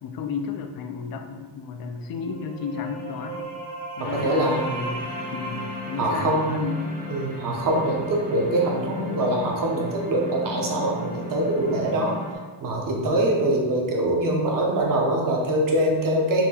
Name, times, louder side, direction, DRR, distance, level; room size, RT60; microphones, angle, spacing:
voice 1, 0.0-3.6 4.0-6.8 13.0-13.2, left 5 dB, 50° left, 5 dB, 0.4 m, -33 dB
sound 1, 2.1-7.8, right 2 dB, 65° right, 1.3 m, -37 dB
sound 2, 4.0-12.3, left 2 dB, 20° right, 0.6 m, -36 dB
voice 2, 4.0-4.6 6.0-6.7 7.1-12.1 12.6-16.5, right 1 dB, 45° right, -1 dB, 0.9 m, -23 dB
4.3 x 2.8 x 4.1 m, 1.4 s
cardioid pair, 165°, 46 cm